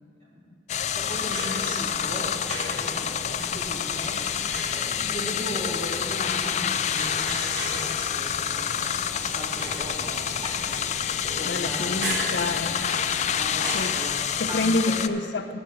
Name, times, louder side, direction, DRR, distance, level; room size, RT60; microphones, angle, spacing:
voice 1, 0.2-0.6 0.9-2.9 3.2-10.8 11.3-12.1 13.3-15.0, equal, 35° right, -6 dB, 3.0 m, -37 dB
sound 1, 0.7-15.1, left 8 dB, 40° left, 0.4 m, -28 dB
sound 2, 1.0-13.7, right 1 dB, 85° right, 3.3 m, -38 dB
voice 2, 11.4-13.0 13.7-13.9 14.4-15.6, left 2 dB, 80° left, 8 dB, 0.7 m, -28 dB
13.0 x 6.0 x 7.6 m, 2.5 s
head